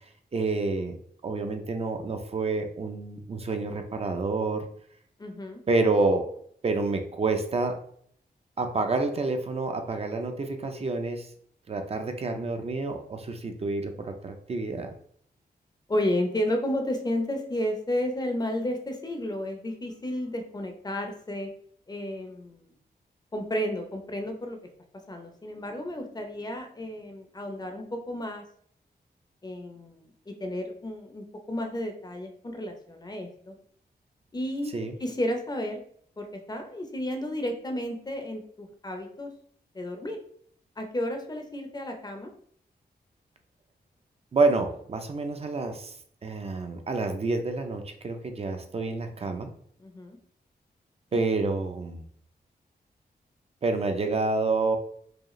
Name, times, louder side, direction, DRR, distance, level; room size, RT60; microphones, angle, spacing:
voice 1, 0.3-1.0 1.2-4.6 5.7-6.3 6.6-7.8 8.6-11.3 11.7-14.9 34.7-34.9 44.3-45.9 46.2-49.5 51.1-52.0 53.6-54.8, right 3 dB, 35° right, 5 dB, 0.5 m, -28 dB
voice 2, 5.2-5.6 15.9-21.5 21.9-22.6 23.3-24.6 24.9-28.4 29.4-33.5 34.3-34.7 35.0-35.8 36.2-39.3 39.7-40.2 40.8-42.3 49.8-50.2 51.1-51.2, left 1 dB, 25° left, 4 dB, 0.6 m, -32 dB
4.8 x 2.4 x 3.0 m, 0.63 s
wide cardioid pair, 140°, 17 cm